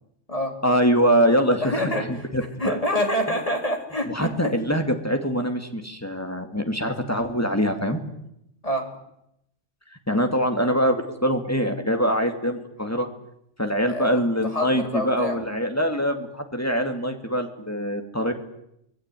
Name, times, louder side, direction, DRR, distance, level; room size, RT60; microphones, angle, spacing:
voice 1, 0.6-2.7 4.1-8.0 10.1-13.1 13.6-18.3, equal, 10° left, 5 dB, 2.6 m, -24 dB
voice 2, 1.6-2.3 2.6-4.5 8.6-8.9 13.9-15.4, equal, 30° left, 3 dB, 3.9 m, -27 dB
25.5 x 20.0 x 9.3 m, 0.80 s
omnidirectional pair, 1.2 m